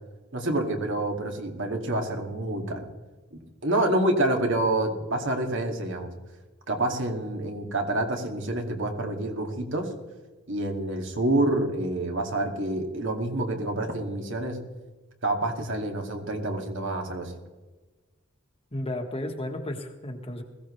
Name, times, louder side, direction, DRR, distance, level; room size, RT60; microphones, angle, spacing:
voice 1, 0.3-2.8 3.6-6.1 6.7-9.9 10.5-14.6 15.2-17.3, right 1 dB, 60° right, 3 dB, 2.2 m, -27 dB
voice 2, 18.7-20.4, left 1 dB, 25° left, 4 dB, 1.4 m, -33 dB
20.5 x 15.5 x 3.2 m, 1.2 s
head